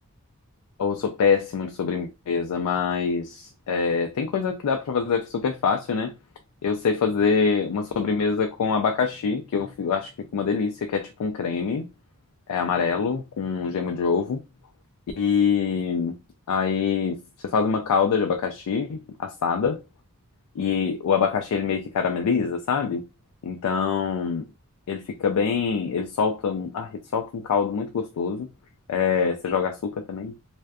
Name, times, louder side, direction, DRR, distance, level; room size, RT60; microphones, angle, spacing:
voice 1, 0.8-6.1 6.6-11.9 12.5-14.4 15.2-16.1 16.5-19.8 20.6-23.0 23.4-24.4 24.9-28.5 28.9-30.3, left 6 dB, 90° left, 0.4 m, -25 dB
2.5 x 2.2 x 2.3 m
head